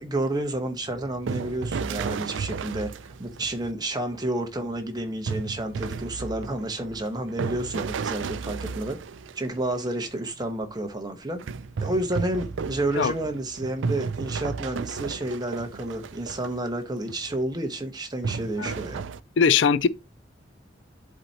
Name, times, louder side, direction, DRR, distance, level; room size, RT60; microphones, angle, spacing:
voice 1, 0.0-2.9 3.2-9.0 9.3-11.4 11.8-19.0, right 1 dB, 20° right, 1.1 m, -30 dB
sound 1, 0.8-3.7 5.3-9.9 11.4-16.7 17.1-17.3 18.2-19.2, right 5 dB, 85° right, 0.4 m, -33 dB
voice 2, 19.4-19.9, left 6 dB, 75° left, 0.4 m, -20 dB
11.0 x 4.2 x 2.8 m
head